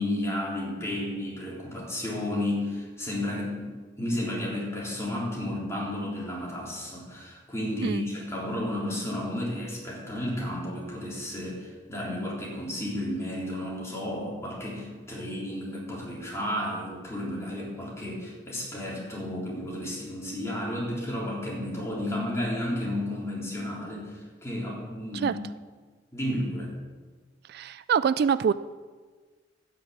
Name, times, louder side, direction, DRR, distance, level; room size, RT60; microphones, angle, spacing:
voice 1, 0.0-25.4 26.1-26.7, left 1 dB, 15° left, -4 dB, 3.7 m, -32 dB
voice 2, 27.5-28.5, right 7 dB, 60° right, 16 dB, 0.3 m, -25 dB
14.0 x 6.0 x 8.5 m, 1.4 s
head